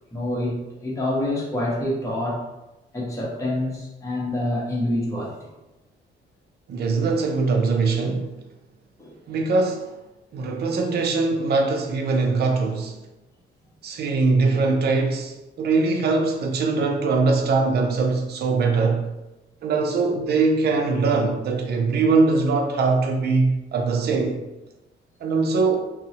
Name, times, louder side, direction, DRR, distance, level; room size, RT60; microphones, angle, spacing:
voice 1, 0.1-2.4 2.9-5.3 9.0-9.1, left 1 dB, 15° left, 1.0 m, -26 dB
voice 2, 6.7-8.3 9.3-9.9 10.3-13.0 13.8-19.1 19.6-24.4 25.2-25.9, right 3 dB, 55° right, 0.5 m, -22 dB
2.6 x 2.1 x 3.9 m
cardioid pair, 90°, 20 cm